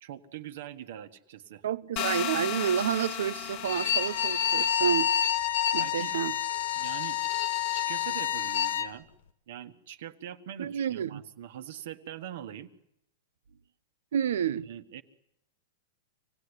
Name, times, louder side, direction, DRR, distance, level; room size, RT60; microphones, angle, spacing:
voice 1, 0.0-1.6 5.8-6.1 6.8-7.2 7.7-9.1 9.5-12.7 14.5-15.0, right 11 dB, 60° right, 1.6 m, -43 dB
voice 2, 1.6-5.1 5.7-6.3 10.6-11.2 14.1-14.7, right 9 dB, 80° right, 0.9 m, -29 dB
sound 1, 2.0-4.8, left 11 dB, 30° left, 1.0 m, -35 dB
Bowed string instrument, 3.6-8.9, left 9 dB, 70° left, 1.8 m, -28 dB
26.5 x 17.0 x 9.9 m
supercardioid pair, 165°, 0 cm